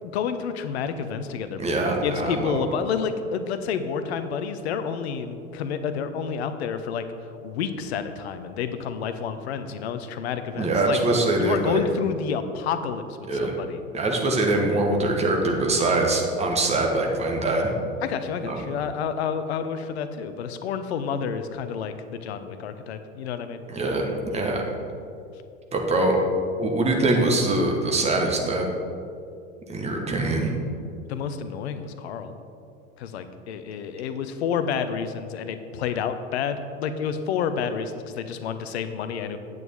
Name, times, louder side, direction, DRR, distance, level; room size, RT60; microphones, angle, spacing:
voice 1, 0.1-1.7 2.0-7.0 7.4-11.0 11.4-13.8 18.0-23.6 31.1-32.4 33.0-39.4, left 7 dB, 55° left, 10 dB, 0.7 m, -29 dB
voice 2, 1.6-2.6 10.5-11.8 13.3-13.5 13.9-17.7 18.4-18.6 23.7-24.6 25.7-26.2 26.6-28.6 29.7-30.5, right 2 dB, 15° right, 1 dB, 1.2 m, -23 dB
9.1 x 8.0 x 3.6 m, 2.5 s
figure-of-eight pair, 85°, 39 cm